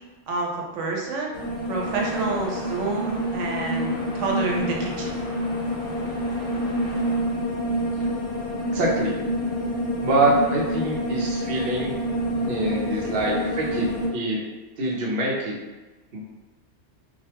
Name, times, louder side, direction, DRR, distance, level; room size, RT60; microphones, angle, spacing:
voice 1, 0.3-1.4 1.7-5.2, right 3 dB, 85° right, 0 dB, 0.9 m, -28 dB
sound 1, 1.3-14.1, equal, 70° left, 0.8 m, -27 dB
sound 2, 1.8-7.2, left 1 dB, 45° left, 0.9 m, -40 dB
voice 2, 8.7-9.2 10.0-11.9 12.4-14.4 14.8-15.6 16.1-16.2, right 2 dB, 60° right, -3 dB, 0.7 m, -25 dB
2.3 x 2.2 x 2.8 m, 1.2 s
omnidirectional pair, 1.2 m